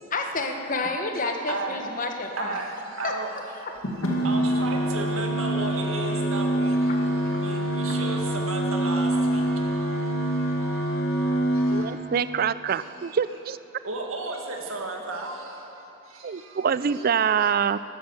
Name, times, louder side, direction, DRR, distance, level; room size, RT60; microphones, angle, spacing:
voice 1, 0.1-2.6 3.0-3.2 6.9-7.1 7.3-7.5 7.9-8.0, left 3 dB, 40° left, 4 dB, 1.1 m, -30 dB
voice 2, 1.5-1.8 2.4-3.3 3.6-3.7 4.2-10.9 11.5-12.0 12.7-13.2 13.8-15.7 16.1-16.6 16.9-17.0 17.3-17.5, right 3 dB, 80° right, 1 dB, 1.9 m, -35 dB
sound 1, 3.8-11.8, right 1 dB, 75° left, 2.2 m, -25 dB
voice 3, 11.7-13.6 16.2-17.8, right 7 dB, 45° right, 15 dB, 0.4 m, -25 dB
13.0 x 12.5 x 7.3 m, 3.0 s
head